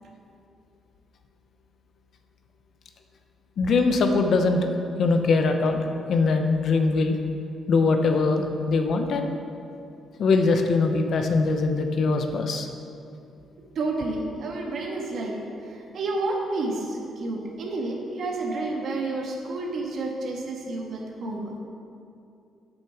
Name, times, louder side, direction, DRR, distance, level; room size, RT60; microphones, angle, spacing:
voice 1, 3.6-4.7 5.0-7.2 7.7-9.3 10.2-12.7, left 3 dB, 60° left, 5 dB, 0.9 m, -22 dB
voice 2, 13.7-21.6, right 2 dB, 60° right, 0 dB, 1.6 m, -30 dB
8.3 x 6.6 x 5.9 m, 2.6 s
cardioid pair, 90°, 0 cm